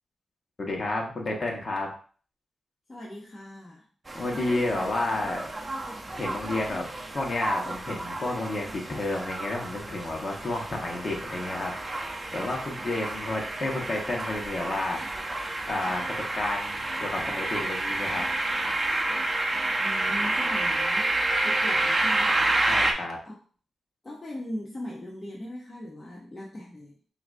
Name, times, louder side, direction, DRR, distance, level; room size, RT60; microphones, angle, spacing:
voice 1, 0.6-1.9 4.1-5.4 6.1-6.9 7.1-15.0 15.7-16.0 16.3-18.2 22.7-23.2, left 2 dB, 45° left, 0 dB, 1.2 m, -31 dB
voice 2, 2.9-3.8 19.8-22.7 23.2-23.4 24.0-27.0, left 1 dB, 30° left, -3 dB, 0.8 m, -39 dB
sound 1, 4.1-22.9, right 2 dB, 25° right, 0.6 m, -29 dB
5.7 x 2.6 x 2.6 m, 0.42 s
cardioid pair, 80°, 0 cm